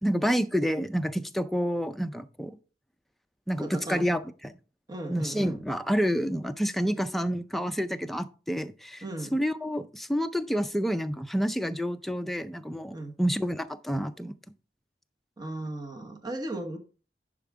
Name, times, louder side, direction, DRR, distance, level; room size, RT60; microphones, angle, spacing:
voice 1, 0.0-2.6 3.5-4.5 5.1-9.0 9.3-14.3, equal, ahead, 0.4 m, -29 dB
voice 2, 3.6-4.0 4.9-5.6 9.0-9.4 12.9-13.1 15.4-16.8, right 2 dB, 25° right, 1.1 m, -36 dB
10.5 x 5.0 x 3.6 m
head